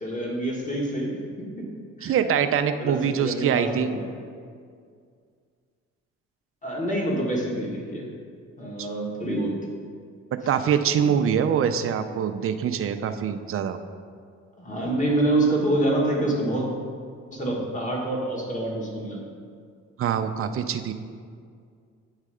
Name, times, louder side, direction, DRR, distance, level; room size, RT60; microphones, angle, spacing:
voice 1, 0.0-1.6 2.0-2.2 2.8-4.0 6.6-8.0 8.6-9.5 11.0-11.1 14.6-16.7 17.3-19.2, right 1 dB, 25° left, -2 dB, 1.5 m, -26 dB
voice 2, 2.0-3.9 8.8-8.9 10.3-13.8 20.0-20.9, right 8 dB, 45° right, 9 dB, 0.5 m, -24 dB
9.1 x 3.3 x 4.9 m, 2.2 s
cardioid pair, 90°, 30 cm